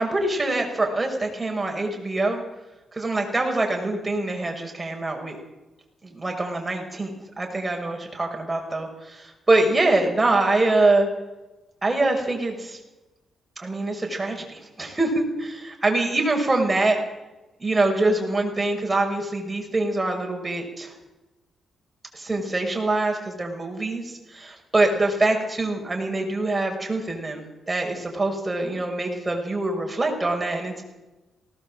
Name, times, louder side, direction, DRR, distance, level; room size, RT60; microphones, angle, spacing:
voice 1, 0.0-2.4 2.9-5.4 6.0-11.1 11.8-12.8 13.6-17.0 17.6-20.9 22.1-30.8, right 2 dB, 20° right, 2 dB, 6.1 m, -24 dB
19.5 x 18.5 x 7.8 m, 1.1 s
cardioid pair, 90°, 0 cm